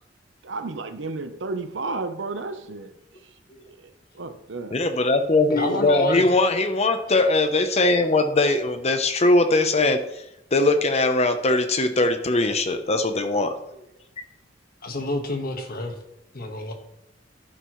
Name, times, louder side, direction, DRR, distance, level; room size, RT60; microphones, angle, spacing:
voice 1, 0.4-2.9 3.7-4.8, right 3 dB, 70° right, 0.9 m, -32 dB
voice 2, 4.6-10.2 10.5-13.8, left 2 dB, 35° left, 0.8 m, -21 dB
voice 3, 5.5-6.2 14.8-16.0 16.3-16.7, left 1 dB, 55° left, 1.5 m, -28 dB
11.5 x 10.0 x 3.2 m
head